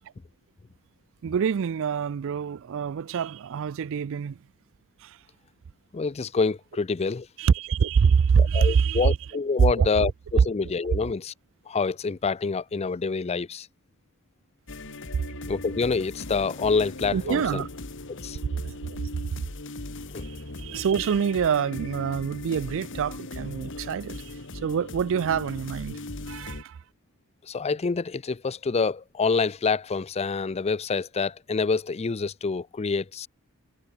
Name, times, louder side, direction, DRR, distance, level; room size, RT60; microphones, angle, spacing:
voice 1, 1.2-4.4 5.0-5.2 7.4-9.2 9.8-9.9 10.4-10.5 17.1-17.7 18.6-19.0 20.2-24.3 24.6-26.0 26.3-26.8, right 6 dB, 60° right, 0.4 m, -25 dB
voice 2, 5.9-7.3 8.4-11.3 11.7-13.7 15.5-17.6 18.1-18.4 20.1-20.2 27.5-33.3, left 4 dB, 30° left, 0.4 m, -27 dB
sound 1, 14.7-26.6, left 2 dB, 60° left, 2.4 m, -39 dB
head